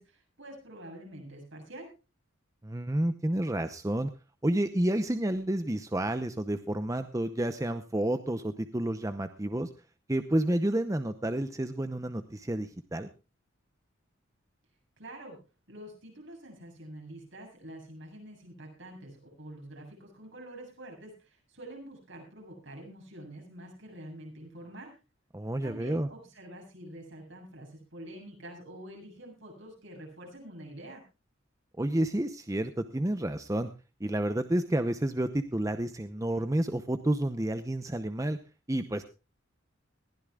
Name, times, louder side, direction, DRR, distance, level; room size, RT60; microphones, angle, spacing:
voice 1, 0.0-1.9 15.0-15.4 15.7-24.9 25.6-31.0, right 1 dB, 65° right, 1 dB, 7.9 m, -46 dB
voice 2, 2.6-4.1 4.4-9.7 10.1-13.1 25.3-26.1 31.8-33.7 34.0-38.4 38.7-39.0, right 1 dB, 15° right, 9 dB, 0.7 m, -30 dB
21.0 x 15.5 x 2.4 m, 0.30 s
head